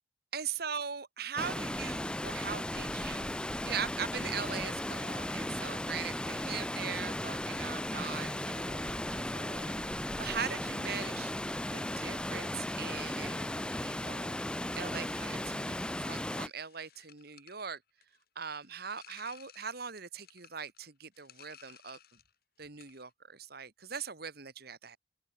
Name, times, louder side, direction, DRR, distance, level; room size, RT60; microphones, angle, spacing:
voice 1, 0.3-3.3 3.6-11.3 11.7-14.3 14.8-17.8 18.4-22.0 22.6-25.0, right 7 dB, 55° right, 1.9 m, -41 dB
Water, 1.4-16.5, left 1 dB, 5° left, 0.5 m, -36 dB
sound 1, 14.9-22.4 22.6-23.1, left 10 dB, 55° left, 6.6 m, -60 dB
open air
head